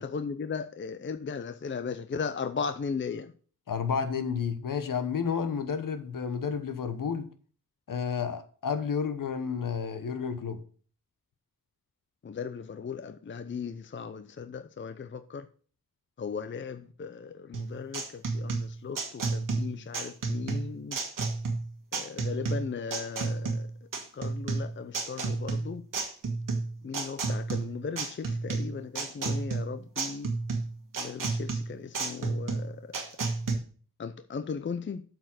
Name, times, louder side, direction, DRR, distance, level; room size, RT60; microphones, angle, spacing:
voice 1, 0.0-3.3 12.2-15.5 16.2-21.0 21.9-23.7 24.1-25.8 26.8-30.3 31.0-32.8 34.0-35.0, left 5 dB, 35° left, 0.5 m, -37 dB
voice 2, 3.7-7.3 7.9-10.6, left 6 dB, 60° left, 1.2 m, -31 dB
sound 1, 17.5-33.5, right 3 dB, 60° right, 1.6 m, -31 dB
7.8 x 4.7 x 6.3 m
cardioid pair, 75°, 36 cm